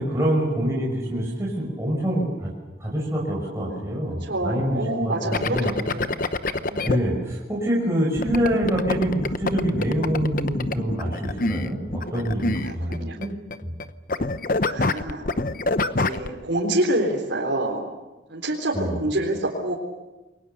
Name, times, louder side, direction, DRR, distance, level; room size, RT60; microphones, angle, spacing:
voice 1, 0.0-2.5 2.8-5.7 6.8-13.3 13.6-13.7 18.7-18.9, equal, 15° right, -4 dB, 5.8 m, -26 dB
voice 2, 4.2-5.6 5.9-6.2 6.7-7.0 12.6-13.2 14.6-15.2 16.0-17.9 18.3-19.8, right 1 dB, 70° right, -2 dB, 3.9 m, -27 dB
sound 1, 5.3-7.0 8.2-13.8 14.1-16.3, left 2 dB, 45° left, 0.9 m, -26 dB
29.0 x 22.5 x 6.9 m, 1.1 s
head